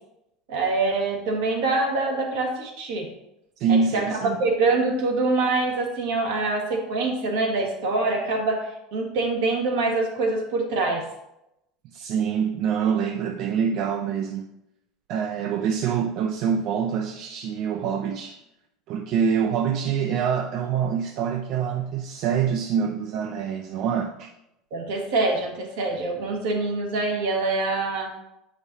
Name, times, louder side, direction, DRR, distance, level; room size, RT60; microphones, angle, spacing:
voice 1, 0.5-3.1 3.7-4.0 4.4-11.0 24.7-28.1, right 3 dB, 80° right, 1.5 m, -25 dB
voice 2, 3.6-4.4 11.8-14.5 15.1-18.4 18.9-24.3, right 7 dB, 60° right, 0.4 m, -25 dB
7.1 x 5.1 x 2.7 m
supercardioid pair, 105°, 0 cm